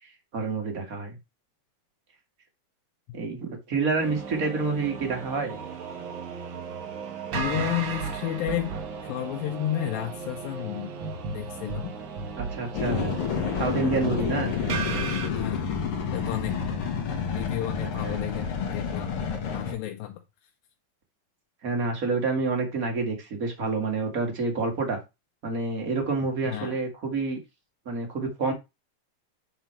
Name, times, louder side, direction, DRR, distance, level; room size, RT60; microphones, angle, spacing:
voice 1, 0.0-1.2 3.1-5.6 12.2-13.2 13.6-14.5 17.9-18.2 21.6-25.0 25.4-27.4 27.8-28.5, right 3 dB, 35° right, 3 dB, 1.6 m, -28 dB
sound 1, 4.0-15.3, right 5 dB, 65° right, 1.3 m, -35 dB
voice 2, 7.3-8.8 9.0-10.9 11.3-11.9 14.5-14.6 15.1-15.8 16.1-16.9 17.3-19.1 19.5-20.2 26.5-26.8, left 13 dB, 80° left, 4 dB, 2.5 m, -32 dB
sound 2, 12.7-19.7, left 6 dB, 55° left, 1.6 m, -29 dB
9.4 x 4.0 x 4.4 m, 0.24 s
omnidirectional pair, 4.0 m